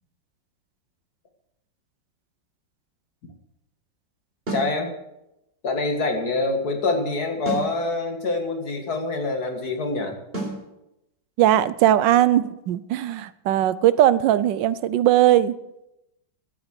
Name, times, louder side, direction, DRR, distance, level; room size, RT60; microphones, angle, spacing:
voice 1, 4.5-4.9 5.6-10.2, left 3 dB, 60° left, 4 dB, 2.4 m, -25 dB
sound 1, 4.5-4.8 7.4-7.8 10.3-10.6, right 2 dB, 30° right, 4.5 m, -29 dB
voice 2, 11.4-15.5, right 12 dB, 90° right, 16 dB, 1.4 m, -19 dB
13.0 x 9.0 x 8.1 m, 0.90 s
omnidirectional pair, 1.9 m